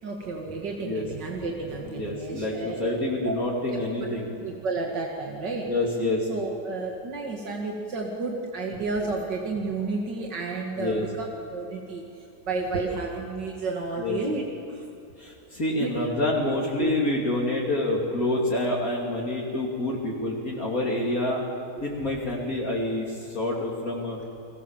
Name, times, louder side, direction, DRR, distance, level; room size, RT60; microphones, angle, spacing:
voice 1, 0.0-2.9 3.2-3.8 4.2-5.7 6.3-12.0 12.5-14.4 14.7-14.8 15.8-15.9 16.8-16.9, right 3 dB, 80° right, 0 dB, 2.7 m, -31 dB
voice 2, 1.8-4.3 5.6-6.3 10.8-11.0 14.0-14.2 15.2-21.4 21.8-24.2, left 2 dB, 55° left, -3 dB, 3.2 m, -27 dB
30.0 x 21.0 x 7.3 m, 2.8 s
omnidirectional pair, 1.9 m